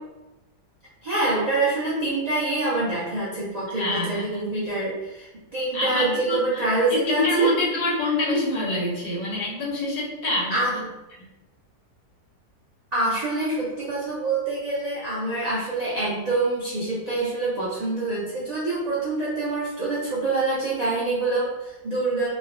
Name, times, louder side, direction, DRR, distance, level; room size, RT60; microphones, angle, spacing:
voice 1, 1.0-7.5 10.5-10.8 12.9-22.3, right 2 dB, 85° right, -8 dB, 0.3 m, -26 dB
voice 2, 3.7-4.2 5.7-6.6 6.9-10.8 11.1-11.3, left 1 dB, 80° left, -3 dB, 1.3 m, -26 dB
3.1 x 2.1 x 2.5 m, 1.0 s
omnidirectional pair, 1.7 m